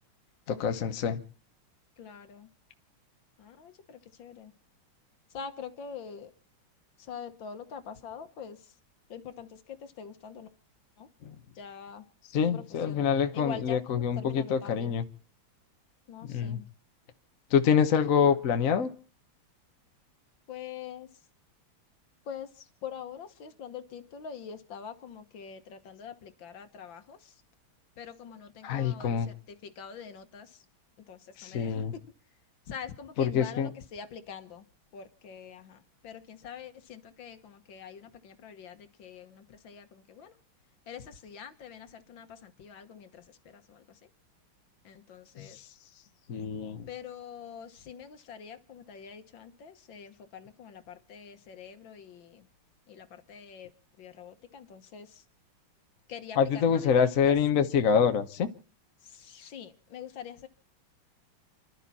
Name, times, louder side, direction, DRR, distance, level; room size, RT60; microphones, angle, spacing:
voice 1, 0.5-1.2 12.3-15.0 16.3-16.6 17.5-18.9 28.6-29.3 31.4-31.9 33.2-33.7 45.4-45.5 46.3-46.9 56.4-58.5, left 7 dB, 50° left, 1.2 m, -26 dB
voice 2, 2.0-2.5 3.4-4.5 5.3-6.3 7.0-8.6 9.1-10.5 11.0-11.1 11.6-12.0 12.5-13.1 13.3-14.9 16.1-16.6 20.5-21.1 22.3-27.3 28.0-30.6 31.1-32.0 32.7-34.6 34.9-40.3 40.9-43.2 43.5-43.8 44.9-45.6 46.9-52.5 52.9-53.7 54.0-55.2 56.1-57.3 59.1-60.5, left 7 dB, 65° left, 1.9 m, -44 dB
29.5 x 11.5 x 4.1 m
omnidirectional pair, 2.3 m